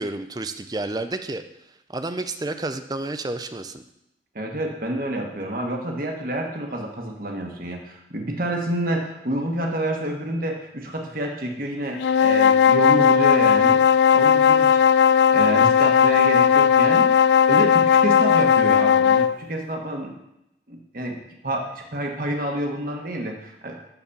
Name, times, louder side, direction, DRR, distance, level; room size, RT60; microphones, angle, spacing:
voice 1, 0.0-1.4 1.9-3.8, right 2 dB, 20° right, 9 dB, 0.5 m, -30 dB
voice 2, 4.3-13.8 14.1-14.8 15.3-17.2 17.5-20.1 20.7-21.2 21.4-23.7, right 1 dB, 50° right, 1 dB, 1.4 m, -28 dB
sound 1, 12.0-19.4, left 7 dB, 80° left, 0.3 m, -16 dB
12.0 x 4.2 x 7.2 m, 0.85 s
head